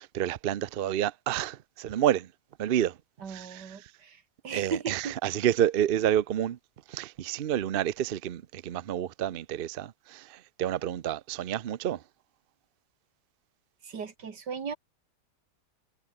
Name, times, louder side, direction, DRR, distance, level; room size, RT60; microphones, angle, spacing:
voice 1, 0.0-2.3 2.6-3.0 3.3-3.9 4.5-6.6 6.9-12.0, right 11 dB, 65° right, 0.5 m, -29 dB
voice 2, 3.2-5.2 13.8-14.8, right 6 dB, 80° right, 2.7 m, -37 dB
omnidirectional pair, 1.8 m